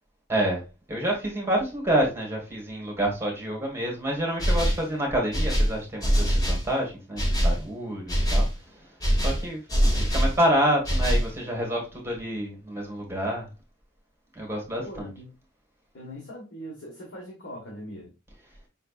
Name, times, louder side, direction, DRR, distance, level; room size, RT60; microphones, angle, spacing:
voice 1, 0.3-0.6 0.9-9.6 9.9-13.5 14.3-15.1, right 1 dB, 15° right, 1.4 m, -28 dB
sound 1, 4.4-4.9 5.3-6.7 7.2-7.6 8.1-8.5 9.0-10.4 10.8-11.3, equal, 20° left, 1.1 m, -23 dB
voice 2, 14.8-15.3 15.9-18.1, equal, 70° left, 1.3 m, -41 dB
5.5 x 3.3 x 2.4 m
head